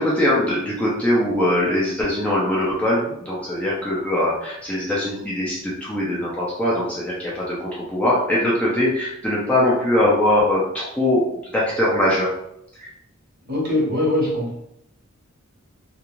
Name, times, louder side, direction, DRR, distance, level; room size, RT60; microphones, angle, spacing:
voice 1, 0.0-11.2 11.5-12.3 12.8-12.9, left 1 dB, 5° left, -7 dB, 0.5 m, -21 dB
voice 2, 13.5-14.6, left 1 dB, 45° right, -4 dB, 1.1 m, -22 dB
2.4 x 2.4 x 3.0 m, 0.76 s
head